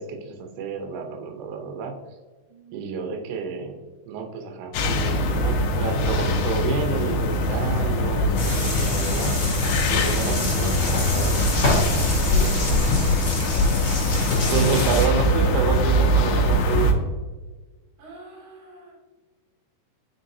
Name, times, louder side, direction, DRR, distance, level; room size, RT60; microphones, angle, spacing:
voice 1, 0.0-2.0 2.7-3.8 4.1-9.3 9.9-11.5 12.3-12.9 13.4-13.5 14.5-16.9, right 5 dB, 80° right, 4 dB, 2.8 m, -29 dB
voice 2, 2.5-2.9 18.0-19.0, right 2 dB, 65° right, -3 dB, 3.1 m, -46 dB
sound 1, 4.7-16.9, left 1 dB, 85° left, 1.8 m, -22 dB
sound 2, 8.4-15.1, left 3 dB, 35° left, 2.0 m, -26 dB
8.1 x 4.7 x 2.7 m, 1.3 s
omnidirectional pair, 4.6 m